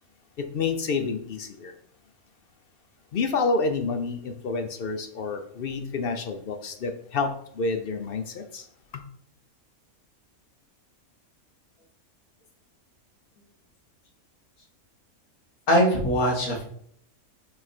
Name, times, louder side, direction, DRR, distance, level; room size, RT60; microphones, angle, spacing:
voice 1, 0.4-1.7 3.1-8.7 8.9-9.0, left 4 dB, 55° left, 6 dB, 0.7 m, -29 dB
voice 2, 15.7-16.6, equal, 75° left, 0 dB, 2.0 m, -21 dB
6.2 x 3.8 x 4.5 m, 0.65 s
omnidirectional pair, 1.5 m